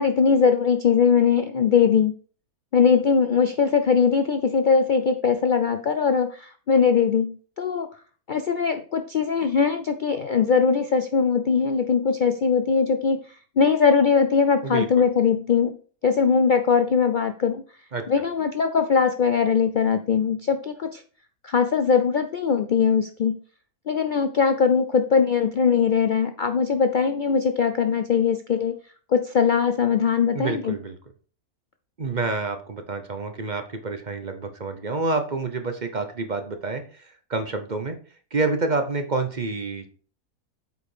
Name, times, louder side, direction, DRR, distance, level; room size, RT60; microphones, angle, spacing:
voice 1, 0.0-2.1 2.7-7.9 8.3-13.2 13.6-15.8 16.0-17.6 18.1-21.0 21.4-23.4 23.9-28.7 29.1-30.7, left 6 dB, 85° left, 8 dB, 0.4 m, -21 dB
voice 2, 14.6-15.1 17.9-18.0 30.3-31.0 32.0-38.0 38.3-39.9, right 3 dB, 35° right, 7 dB, 0.8 m, -28 dB
8.0 x 5.0 x 4.8 m, 0.42 s
omnidirectional pair, 1.6 m